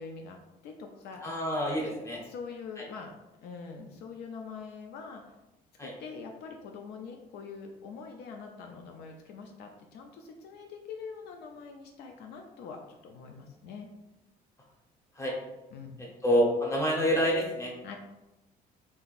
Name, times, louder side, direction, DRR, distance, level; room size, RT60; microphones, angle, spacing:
voice 1, 0.0-1.2 2.3-3.1 3.4-5.2 5.8-13.9 15.7-16.0 17.8-18.0, left 5 dB, 75° left, 3 dB, 0.4 m, -44 dB
voice 2, 1.2-2.2 2.8-2.9 5.8-5.9 15.2-15.3 16.2-17.7, equal, 15° left, -3 dB, 0.9 m, -27 dB
3.6 x 2.7 x 2.4 m, 0.98 s
cardioid pair, 110°, 17 cm